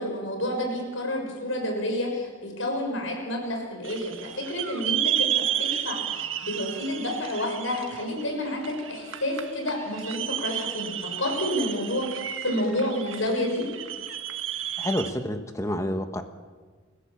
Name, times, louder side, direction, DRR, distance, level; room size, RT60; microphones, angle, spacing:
voice 1, 0.0-13.6, left 1 dB, 85° left, 1 dB, 6.5 m, -29 dB
sound 1, 3.8-15.1, right 10 dB, 80° right, 1.6 m, -32 dB
voice 2, 14.8-16.2, left 1 dB, 15° left, 6 dB, 1.2 m, -28 dB
29.0 x 15.5 x 7.5 m, 1.5 s
head